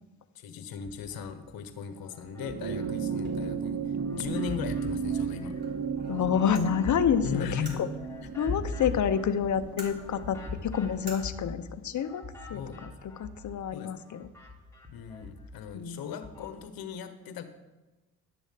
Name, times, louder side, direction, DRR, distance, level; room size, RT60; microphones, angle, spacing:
voice 1, 0.3-5.6 7.2-7.8 8.2-8.3 12.5-12.8 13.7-13.9 14.9-17.5, left 7 dB, 75° left, 9 dB, 1.2 m, -38 dB
bf-fuckinaround, 0.7-1.5 2.0-3.6 4.0-13.7 14.0-16.6, left 3 dB, 10° left, 3.2 m, -42 dB
sound 1, 2.3-11.0 12.2-12.3, right 6 dB, 50° right, 1.3 m, -35 dB
sound 2, 3.1-11.1, right 2 dB, 30° right, 4.2 m, -49 dB
voice 2, 6.1-7.6 8.4-12.2 12.5-12.9 13.2-14.3 15.7-16.0, left 8 dB, 55° left, 10 dB, 1.0 m, -28 dB
11.5 x 7.0 x 5.9 m, 1.1 s
supercardioid pair, 60°, 36 cm